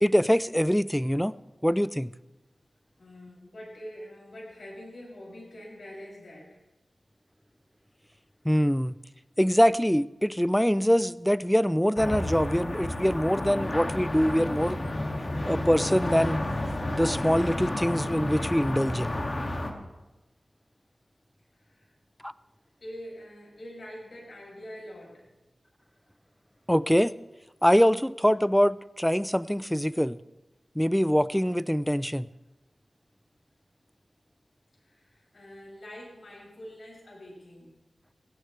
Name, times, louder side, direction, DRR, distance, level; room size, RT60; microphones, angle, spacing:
voice 1, 0.0-1.3 1.6-2.1 8.5-8.9 9.4-14.8 15.5-16.4 16.9-19.1 22.2-22.3 26.7-27.1 27.6-30.2 30.8-32.3, equal, 5° left, 16 dB, 0.4 m, -24 dB
voice 2, 3.0-6.6 21.6-21.9 22.8-25.3 34.8-37.8, equal, 75° left, -3 dB, 7.1 m, -45 dB
sound 1, 12.0-19.7, left 1 dB, 45° left, 2.3 m, -31 dB
21.0 x 17.0 x 3.4 m, 1.1 s
wide cardioid pair, 70°, 0 cm